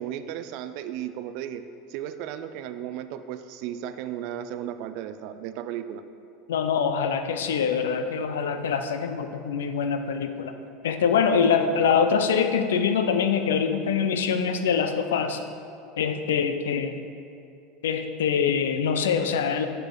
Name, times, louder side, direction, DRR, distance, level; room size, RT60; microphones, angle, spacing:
voice 1, 0.0-1.6 1.9-6.0, right 10 dB, 65° right, 11 dB, 0.4 m, -35 dB
voice 2, 6.5-10.5 10.8-15.4 16.0-17.0 17.8-19.7, left 6 dB, 85° left, 8 dB, 0.5 m, -24 dB
6.9 x 5.8 x 3.9 m, 2.6 s
hypercardioid pair, 100°, 0 cm